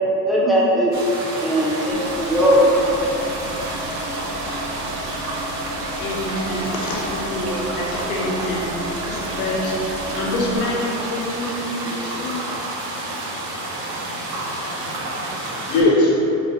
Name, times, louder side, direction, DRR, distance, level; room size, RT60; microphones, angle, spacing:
voice 1, 0.3-0.9 1.4-3.0, equal, ahead, -7 dB, 0.9 m, -18 dB
sound 1, 0.9-15.8, right 2 dB, 90° right, 1.0 m, -30 dB
sound 2, 1.9-10.6, equal, 30° right, 1.1 m, -33 dB
voice 2, 6.0-8.7 9.1-9.7 10.1-12.3, left 1 dB, 85° left, -3 dB, 1.1 m, -27 dB
voice 3, 14.8-16.4, left 1 dB, 40° left, -2 dB, 0.9 m, -21 dB
4.1 x 2.6 x 4.3 m, 3.0 s
supercardioid pair, 105°, 47 cm